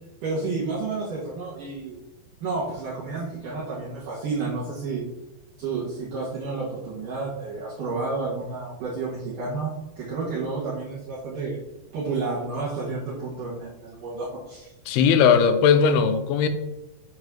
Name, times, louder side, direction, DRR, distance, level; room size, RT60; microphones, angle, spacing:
voice 1, 0.2-2.0 2.4-5.1 5.6-11.6 11.9-14.7, right 3 dB, 60° right, -8 dB, 2.9 m, -30 dB
voice 2, 14.9-16.5, left 6 dB, 85° left, 9 dB, 2.6 m, -18 dB
8.3 x 3.2 x 6.0 m, 0.96 s
omnidirectional pair, 4.5 m